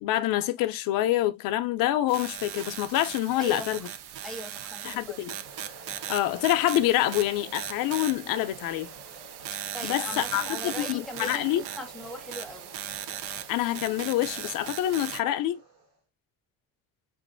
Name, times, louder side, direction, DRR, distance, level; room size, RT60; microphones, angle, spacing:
voice 1, 0.0-3.9 4.8-5.4 6.1-8.9 9.8-11.6 13.5-15.6, left 14 dB, 60° left, 0.5 m, -26 dB
sound 1, 2.1-15.2, right 10 dB, 85° right, 0.6 m, -38 dB
voice 2, 3.4-3.9 4.2-5.2 9.7-12.7, left 1 dB, ahead, 0.7 m, -40 dB
sound 2, 4.8-16.0, right 2 dB, 45° right, 1.5 m, -50 dB
6.1 x 2.5 x 2.5 m
cardioid pair, 175°, 38 cm